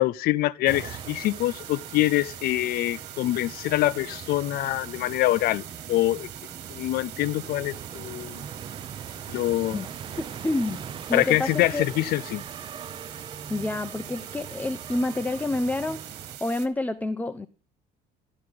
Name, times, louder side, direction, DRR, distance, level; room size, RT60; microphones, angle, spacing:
voice 1, 0.0-6.3 6.7-8.4 9.3-9.8 11.1-12.4, left 16 dB, 65° left, 0.7 m, -25 dB
sound 1, 0.6-16.4, right 7 dB, 30° right, 0.8 m, -41 dB
sound 2, 0.7-16.7, right 11 dB, 80° right, 3.6 m, -43 dB
voice 2, 9.1-9.9 10.2-11.8 13.5-16.0 16.4-17.5, left 2 dB, 10° left, 0.8 m, -29 dB
15.0 x 12.0 x 7.8 m
cardioid pair, 155°, 17 cm